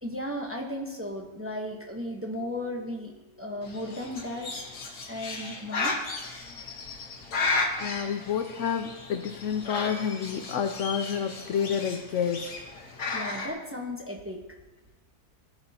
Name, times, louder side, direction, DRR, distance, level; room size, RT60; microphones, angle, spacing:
voice 1, 0.0-6.0 13.1-14.6, left 1 dB, 10° right, 1 dB, 0.8 m, -35 dB
Bird, 3.6-13.5, left 3 dB, 90° left, 1.9 m, -34 dB
voice 2, 7.8-12.6, left 7 dB, 65° left, 6 dB, 0.8 m, -29 dB
18.0 x 7.0 x 2.8 m, 1.1 s
omnidirectional pair, 1.6 m